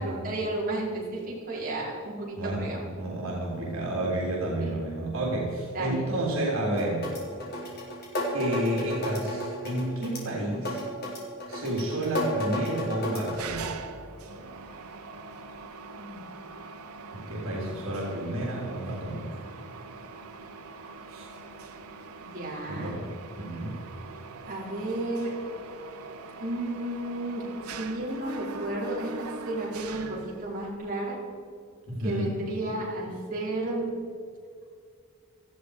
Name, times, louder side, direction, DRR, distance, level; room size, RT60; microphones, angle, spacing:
voice 1, 0.0-2.9 4.6-4.7 5.6-6.1 16.0-16.2 22.3-22.9 24.5-25.4 26.4-31.2 32.0-33.9, right 1 dB, 40° right, -6 dB, 5.0 m, -33 dB
voice 2, 2.4-7.1 8.3-10.8 11.5-13.6 17.1-19.3 21.1-21.3 22.7-23.1 23.4-23.8 31.9-32.3, right 1 dB, 70° right, -3 dB, 3.6 m, -30 dB
sound 1, 6.7-13.3, equal, 45° left, 4.0 m, -33 dB
Mechanisms, 13.3-30.8, right 4 dB, 85° right, 1.1 m, -43 dB
18.0 x 14.0 x 5.0 m, 2.3 s
head